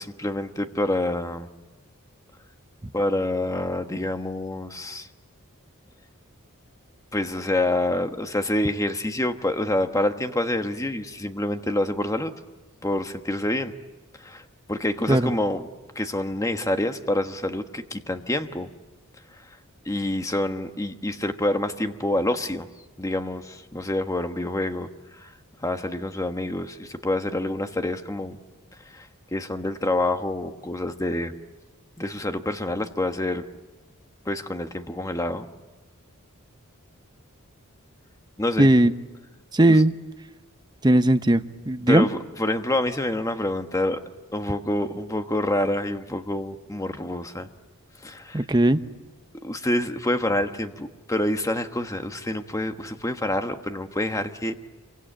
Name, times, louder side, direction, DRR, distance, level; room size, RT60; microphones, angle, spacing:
voice 1, 0.0-1.5 2.9-5.1 7.1-12.3 12.8-13.7 14.2-14.4 14.7-15.7 15.9-18.7 19.8-22.7 23.0-24.9 25.6-28.4 28.9-29.1 29.3-31.3 32.0-33.4 34.2-35.5 38.4-38.7 39.7-39.8 41.9-44.0 44.3-47.5 48.0-48.4 49.4-54.6, left 1 dB, 15° left, 7 dB, 1.3 m, -27 dB
voice 2, 38.6-38.9 39.5-39.9 40.8-42.1 48.3-48.8, right 1 dB, 20° right, 10 dB, 0.9 m, -18 dB
27.5 x 24.0 x 8.9 m, 1.2 s
head